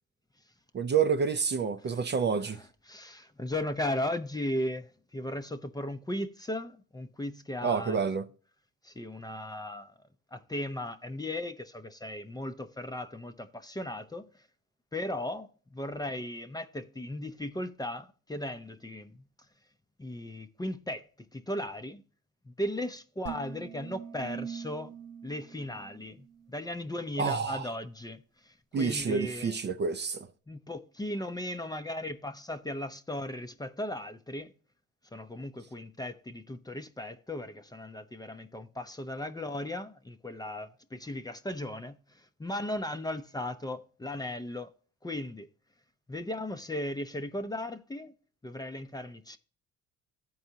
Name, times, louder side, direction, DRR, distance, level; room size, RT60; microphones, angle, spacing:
voice 1, 0.7-2.6 7.6-8.2 27.2-27.7 28.7-30.3, right 6 dB, 35° right, 0.5 m, -28 dB
voice 2, 2.5-8.0 8.8-9.9 10.3-14.4 14.9-19.2 20.0-22.0 22.5-24.9 25.2-29.5 30.5-34.5 35.1-44.7 45.0-45.5 46.1-48.1 48.4-49.4, left 1 dB, 15° left, 0.5 m, -37 dB
sound 1, 23.3-26.6, right 8 dB, 55° right, 0.8 m, -43 dB
14.0 x 4.7 x 2.7 m
cardioid pair, 90°, 30 cm